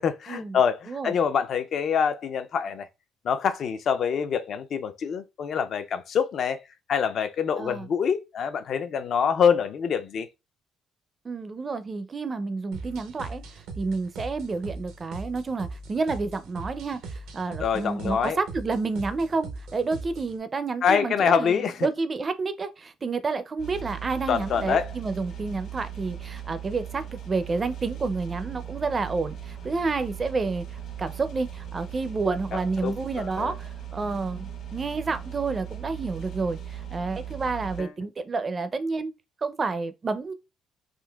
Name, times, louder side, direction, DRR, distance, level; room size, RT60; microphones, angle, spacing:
voice 1, 0.0-2.9 3.2-6.6 6.9-10.3 17.6-18.4 20.8-21.9 24.3-24.9 32.5-33.5 37.8-37.9, left 7 dB, 55° left, 0.4 m, -25 dB
voice 2, 11.2-30.6 31.0-39.1 39.4-40.3, right 4 dB, 30° right, 0.4 m, -30 dB
sound 1, 12.7-20.4, right 3 dB, 90° right, 0.6 m, -40 dB
sound 2, 23.6-37.8, right 9 dB, 75° left, 1.1 m, -38 dB
3.7 x 2.4 x 2.2 m
cardioid pair, 95°, 0 cm